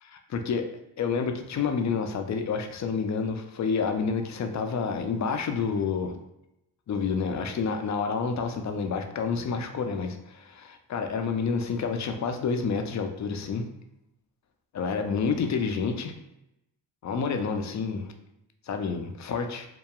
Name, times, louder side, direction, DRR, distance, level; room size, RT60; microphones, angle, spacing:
voice 1, 0.0-0.7 1.0-6.1 6.9-13.6 14.7-16.2 17.0-18.1 18.7-19.7, left 5 dB, 40° left, 6 dB, 0.4 m, -29 dB
2.8 x 2.2 x 2.2 m, 0.85 s
supercardioid pair, 45°, 46 cm